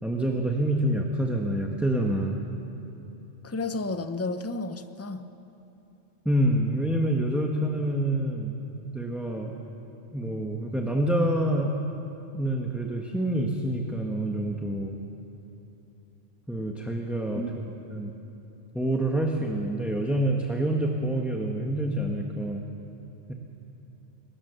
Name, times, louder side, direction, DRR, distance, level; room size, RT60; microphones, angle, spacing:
voice 1, 0.0-2.4 6.2-8.6 8.9-9.5 10.1-11.7 12.3-14.9 16.5-18.1 18.7-22.6 23.3-23.4, right 1 dB, ahead, 0 dB, 1.2 m, -27 dB
voice 2, 3.4-5.3 17.3-17.7, left 2 dB, 15° left, 9 dB, 0.5 m, -32 dB
22.0 x 18.5 x 6.8 m, 3.0 s
omnidirectional pair, 1.3 m